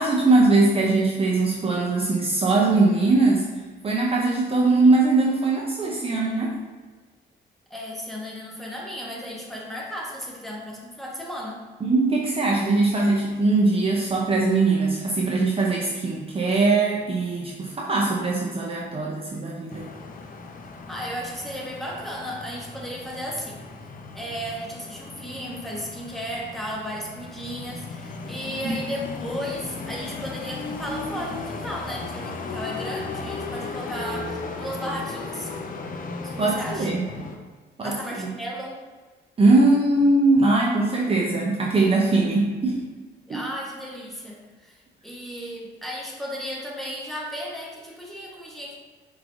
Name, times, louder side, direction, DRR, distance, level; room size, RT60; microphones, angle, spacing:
voice 1, 0.0-3.4 3.8-6.5 11.8-19.9 36.4-37.0 37.8-38.3 39.4-42.8 43.3-43.4, right 3 dB, 30° right, -3 dB, 0.6 m, -21 dB
voice 2, 7.7-11.6 20.9-23.6 24.1-35.5 36.2-36.9 37.8-38.8 43.3-48.8, equal, ahead, -3 dB, 1.0 m, -34 dB
sound 1, 19.7-37.4, left 3 dB, 45° left, 0.5 m, -36 dB
4.7 x 3.1 x 2.6 m, 1.4 s
cardioid pair, 90°, 20 cm